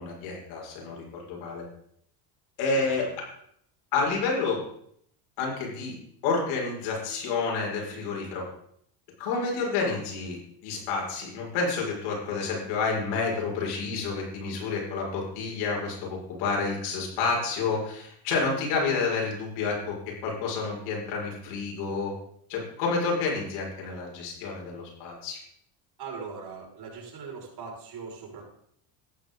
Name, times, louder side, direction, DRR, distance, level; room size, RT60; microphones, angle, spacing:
voice 1, 0.0-1.6 2.6-3.0 3.9-4.6 5.4-5.9 6.2-8.4 9.2-19.9 20.2-22.1 22.5-25.4, left 4 dB, 80° left, -1 dB, 6.6 m, -29 dB
voice 2, 26.0-28.5, right 5 dB, 50° right, -2 dB, 6.3 m, -40 dB
15.0 x 11.5 x 4.1 m, 0.68 s
supercardioid pair, 100°, 49 cm